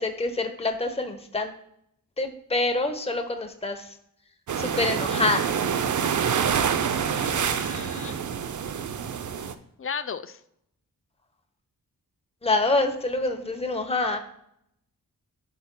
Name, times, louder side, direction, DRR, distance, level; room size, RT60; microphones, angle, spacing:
voice 1, 0.0-1.5 2.2-3.9 4.6-5.4 12.4-14.2, left 2 dB, 15° left, 5 dB, 0.9 m, -26 dB
sound 1, 4.5-9.5, right 7 dB, 55° right, 0.6 m, -26 dB
voice 2, 7.1-8.2 9.8-10.4, left 6 dB, 40° left, 11 dB, 0.5 m, -36 dB
11.0 x 5.4 x 2.2 m, 0.74 s
cardioid pair, 55°, 35 cm